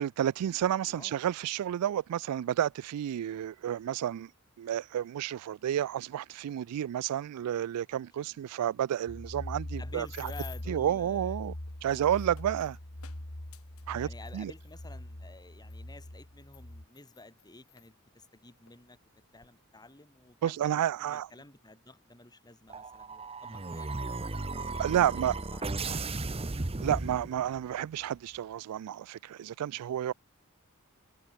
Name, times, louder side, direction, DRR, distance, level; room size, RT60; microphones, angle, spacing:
voice 1, 0.0-4.3 4.6-10.3 10.7-11.5 11.8-12.8 13.9-14.5 20.4-21.3 24.8-25.3 26.8-30.1, right 10 dB, 90° right, 0.3 m, -31 dB
voice 2, 0.8-1.2 8.2-8.4 9.8-11.4 11.9-12.1 13.9-19.0 19.3-24.0 24.7-26.2 29.7-30.0, left 2 dB, 20° left, 3.4 m, -52 dB
sound 1, 9.1-16.8, left 1 dB, 50° left, 2.4 m, -42 dB
sound 2, 9.7-10.8 11.6-14.9 15.7-15.8 16.4-17.9 18.7-18.8 19.1-19.5, left 13 dB, 70° left, 1.6 m, -54 dB
sound 3, 22.7-27.7, right 3 dB, 25° right, 0.9 m, -35 dB
head